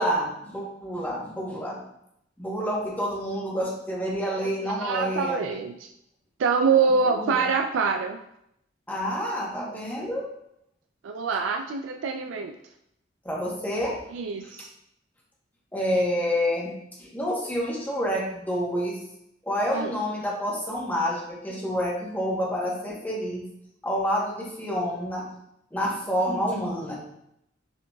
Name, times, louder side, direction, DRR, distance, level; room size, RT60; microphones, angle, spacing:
voice 1, 0.0-1.8 2.4-5.4 6.8-7.5 8.9-10.3 13.2-14.0 14.4-14.5 15.7-19.0 19.4-23.4 23.8-25.3 25.7-27.0, equal, 10° left, -3 dB, 1.0 m, -28 dB
voice 2, 4.4-5.9 6.4-8.2 11.0-12.6 14.1-14.7 19.7-19.9, right 5 dB, 85° right, 5 dB, 0.3 m, -25 dB
6.0 x 3.8 x 2.3 m, 0.78 s
head